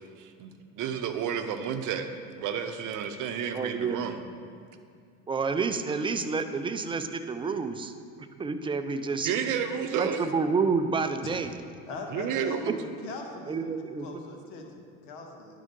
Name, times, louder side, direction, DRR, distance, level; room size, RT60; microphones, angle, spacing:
voice 1, 0.2-2.1 2.4-4.2 9.2-10.3 12.1-12.8, right 7 dB, 50° right, 8 dB, 0.8 m, -31 dB
voice 2, 3.5-4.0 5.3-7.9 8.4-9.3 9.9-11.5 12.6-12.7 13.5-14.1, right 4 dB, 15° right, 8 dB, 0.3 m, -29 dB
voice 3, 11.9-13.7 14.0-15.6, left 3 dB, 70° left, 2 dB, 1.4 m, -41 dB
10.5 x 3.8 x 5.2 m, 2.3 s
hypercardioid pair, 85°, 39 cm